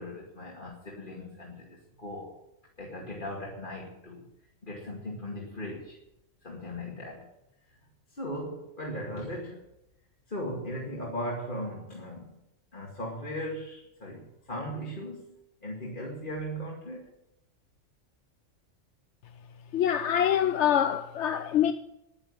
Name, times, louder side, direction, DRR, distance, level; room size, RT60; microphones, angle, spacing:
voice 1, 0.0-2.4 2.8-4.2 4.6-6.0 6.4-7.3 8.1-9.7 10.3-12.4 12.7-17.1, equal, 40° left, 2.4 m, -38 dB
voice 2, 19.7-21.7, left 9 dB, 70° left, 1.0 m, -25 dB
10.5 x 10.0 x 9.5 m
omnidirectional pair, 1.3 m